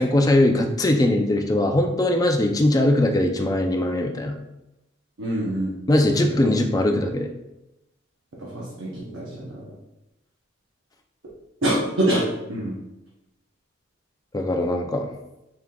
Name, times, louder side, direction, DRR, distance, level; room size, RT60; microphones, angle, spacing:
voice 1, 0.0-4.4 5.9-7.3 14.3-15.1, left 1 dB, 20° left, 4 dB, 0.3 m, -20 dB
voice 2, 5.2-5.8 8.4-9.7 11.6-12.7, right 1 dB, 75° right, -5 dB, 0.8 m, -25 dB
4.6 x 3.7 x 2.3 m, 0.92 s
head